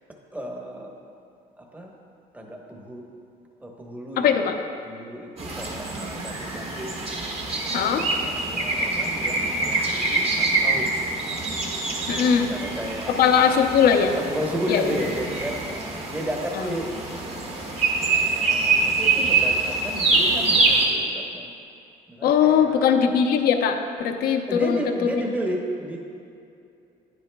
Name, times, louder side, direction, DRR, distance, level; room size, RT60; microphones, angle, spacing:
voice 1, 0.3-0.9 1.6-1.9 2.3-3.0 3.6-6.9 7.5-11.0 12.2-13.6 14.1-17.2 18.1-21.5 22.1-22.8 24.5-26.0, equal, 10° right, 0 dB, 1.0 m, -33 dB
voice 2, 4.2-4.5 7.7-8.0 12.1-12.5 13.2-14.2 14.7-14.8 22.2-24.8, left 7 dB, 65° left, 5 dB, 0.6 m, -20 dB
sound 1, 5.4-20.9, right 3 dB, 35° right, 1.4 m, -25 dB
10.0 x 9.4 x 2.2 m, 2.6 s
cardioid pair, 110°, 17 cm